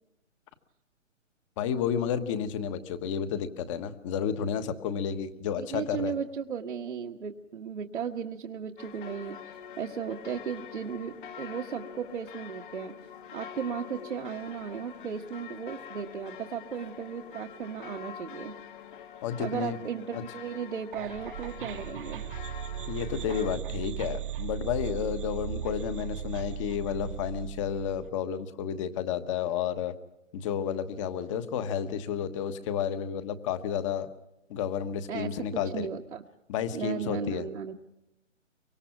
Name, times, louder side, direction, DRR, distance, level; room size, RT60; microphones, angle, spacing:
voice 1, 1.6-6.1 19.2-19.8 20.1-20.2 22.9-29.9 30.3-34.1 34.5-35.9 36.5-37.5, left 8 dB, 25° left, 11 dB, 1.3 m, -31 dB
voice 2, 5.6-12.9 13.3-18.5 19.4-22.2 35.1-36.2 36.7-37.7, right 7 dB, 65° right, -1 dB, 1.6 m, -36 dB
sound 1, 8.8-23.5, left 8 dB, 40° left, 1.5 m, -45 dB
sound 2, 20.9-28.1, right 11 dB, 40° right, 1.2 m, -37 dB
24.5 x 23.0 x 6.0 m, 0.91 s
hypercardioid pair, 145°, 38 cm